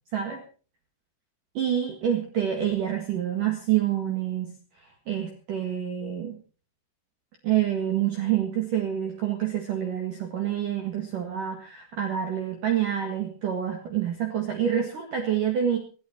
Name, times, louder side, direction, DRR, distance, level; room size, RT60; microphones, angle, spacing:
voice 1, 1.5-4.6 5.1-6.4 7.4-15.8, right 10 dB, 55° right, 4 dB, 2.7 m, -27 dB
17.5 x 16.5 x 4.5 m, 0.39 s
omnidirectional pair, 5.7 m